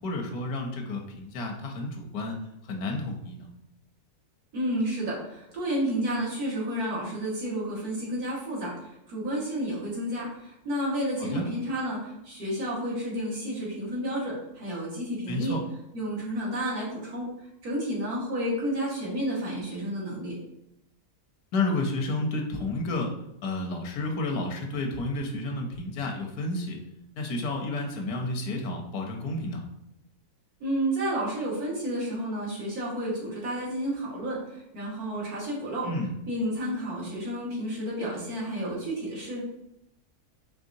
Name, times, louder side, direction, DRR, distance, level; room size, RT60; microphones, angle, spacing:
voice 1, 0.0-3.5 11.2-11.4 15.3-15.6 21.5-23.1 23.4-26.8 27.1-29.6 35.8-36.1, left 2 dB, 75° left, 2 dB, 1.1 m, -31 dB
voice 2, 4.5-15.5 15.9-20.4 30.6-35.9 36.3-39.4, right 1 dB, 75° right, -5 dB, 1.9 m, -31 dB
4.6 x 3.2 x 2.6 m, 0.81 s
omnidirectional pair, 1.6 m